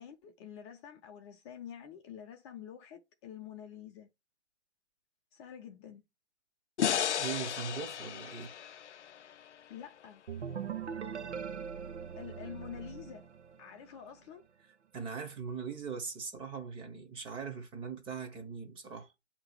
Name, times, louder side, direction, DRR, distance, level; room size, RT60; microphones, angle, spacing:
voice 1, 0.0-4.1 5.3-6.0 9.7-10.2 12.2-13.2 13.6-14.4, left 9 dB, 25° left, 0.8 m, -47 dB
sound 1, 6.8-10.0, left 9 dB, 85° left, 0.5 m, -34 dB
voice 2, 7.2-8.5 14.9-19.1, right 6 dB, 15° right, 0.9 m, -40 dB
sound 2, 10.3-14.0, right 7 dB, 80° right, 0.9 m, -41 dB
8.8 x 3.0 x 6.3 m
hypercardioid pair, 140°, 34 cm